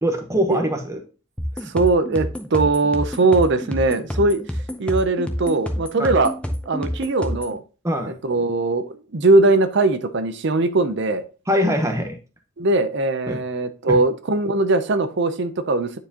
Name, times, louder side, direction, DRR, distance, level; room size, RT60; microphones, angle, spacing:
voice 1, 0.0-1.0 6.0-6.1 7.8-8.1 11.5-12.2 13.3-13.4 13.9-14.0, equal, 15° right, 4 dB, 0.9 m, -22 dB
sound 1, 1.4-7.6, equal, 5° left, 0.6 m, -28 dB
voice 2, 1.6-4.4 4.8-6.3 6.7-7.6 8.1-11.2 12.6-16.0, right 2 dB, 50° right, 11 dB, 0.6 m, -20 dB
9.3 x 4.7 x 2.9 m, 0.34 s
head